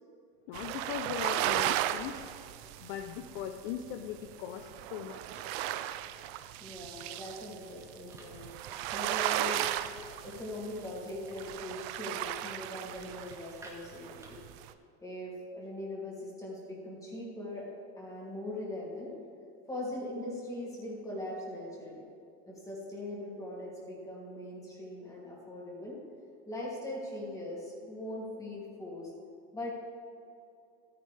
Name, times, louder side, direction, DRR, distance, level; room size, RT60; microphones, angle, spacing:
voice 1, 0.5-2.4 2.8-5.5, left 9 dB, 65° left, 5 dB, 0.7 m, -39 dB
sound 1, 0.5-13.7 14.0-14.7, right 13 dB, 65° right, 0.6 m, -35 dB
voice 2, 6.6-9.6 10.2-14.4 15.0-17.7 18.0-19.1 19.7-22.0 22.5-26.0 26.5-29.1 29.5-29.7, left 1 dB, 10° left, -4 dB, 2.8 m, -41 dB
sound 2, 7.4-14.7, right 1 dB, 10° right, 2.0 m, -57 dB
13.5 x 9.8 x 3.4 m, 2.7 s
supercardioid pair, 140°, 33 cm